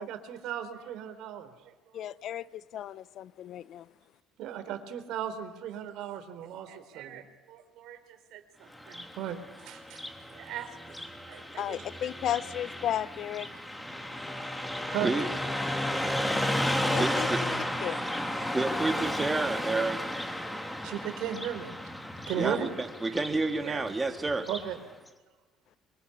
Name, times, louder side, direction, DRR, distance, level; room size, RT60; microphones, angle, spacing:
voice 1, 0.0-2.5 4.4-10.0 10.3-11.0 11.3-12.2 13.6-13.7 14.1-14.6 14.9-15.1 18.3-18.6 20.5-22.0 22.3-22.7 23.1-23.2 23.6-23.8 24.5-24.8, right 10 dB, 70° right, 3.9 m, -38 dB
voice 2, 1.9-3.9 11.6-13.5 16.9-17.3 17.8-18.0, left 11 dB, 60° left, 0.9 m, -34 dB
Car passing by, 8.8-24.7, left 1 dB, 10° left, 3.4 m, -33 dB
voice 3, 16.9-17.6 18.5-20.0 22.3-24.5, right 3 dB, 20° right, 3.5 m, -30 dB
24.5 x 24.0 x 10.0 m
hypercardioid pair, 70°, 0 cm